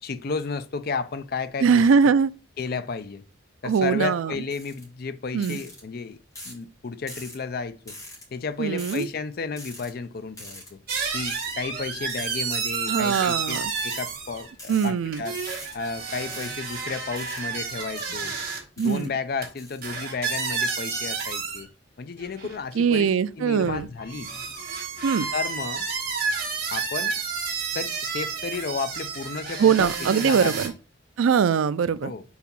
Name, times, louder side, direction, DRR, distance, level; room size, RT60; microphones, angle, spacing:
voice 1, 0.0-1.9 2.6-3.2 3.6-6.2 6.4-8.0 8.3-10.8 11.1-15.4 15.7-18.4 18.8-21.7 22.0-23.1 23.4-24.3 25.3-25.9 26.7-27.2 27.7-30.7 32.0-32.2, left 4 dB, 50° left, 0.5 m, -32 dB
voice 2, 1.6-2.3 3.6-4.3 5.3-5.6 8.6-9.1 12.9-13.7 14.7-15.2 18.8-19.1 22.7-23.9 25.0-25.3 29.6-30.7 31.2-32.1, right 6 dB, 90° right, 0.4 m, -21 dB
sound 1, 4.5-4.8 5.4-5.8 6.3-6.6 7.1-7.4 7.9-8.2 8.8-9.1 9.6-9.9 10.4-10.7 11.2-11.5 12.1-12.4 12.9-13.2 13.7-14.0 14.5-14.9 15.4-15.8 16.3-16.6 17.1-17.4 18.0-18.3 18.8-19.1 19.6-19.8, left 1 dB, 15° left, 2.1 m, -42 dB
sound 2, 10.9-14.5 15.0-18.6 19.4-19.5 19.8-21.6 22.2-22.6 23.6-30.7, right 5 dB, 50° right, 2.0 m, -30 dB
4.7 x 4.1 x 5.3 m
head